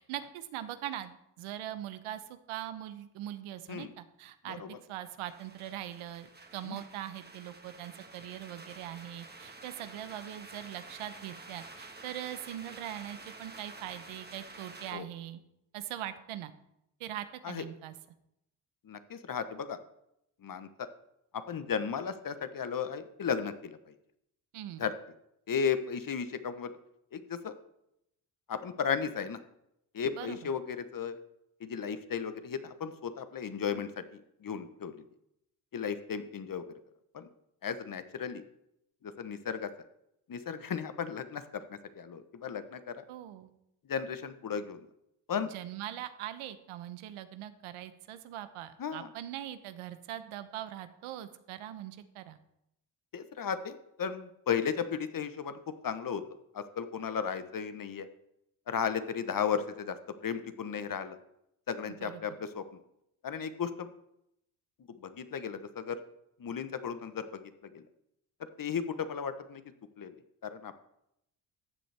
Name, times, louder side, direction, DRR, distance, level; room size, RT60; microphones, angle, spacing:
voice 1, 0.0-4.6 4.9-15.4 15.7-16.5 17.0-17.9 24.5-24.8 30.1-30.5 43.1-43.5 45.5-52.4 61.9-62.2, right 12 dB, 80° right, 12 dB, 0.9 m, -41 dB
sound 1, 5.3-14.9, right 3 dB, 20° right, 1.5 m, -50 dB
voice 2, 18.9-19.8 20.4-20.9 21.3-23.8 24.8-24.9 25.5-26.7 27.1-27.5 28.5-29.4 29.9-31.2 31.6-34.0 34.4-35.0 35.7-36.6 37.1-37.3 37.6-38.4 39.2-39.7 40.3-43.0 43.9-44.8 45.3-45.5 48.8-49.1 53.1-55.6 55.8-56.2 56.5-58.1 58.7-60.0 60.2-61.2 61.7-62.6 63.2-63.9 65.0-66.0 66.4-67.4 67.7-67.8 68.6-69.6 70.0-70.1 70.4-70.8, left 7 dB, 40° left, 11 dB, 1.0 m, -35 dB
14.0 x 7.7 x 3.4 m, 0.81 s
supercardioid pair, 60°, 50 cm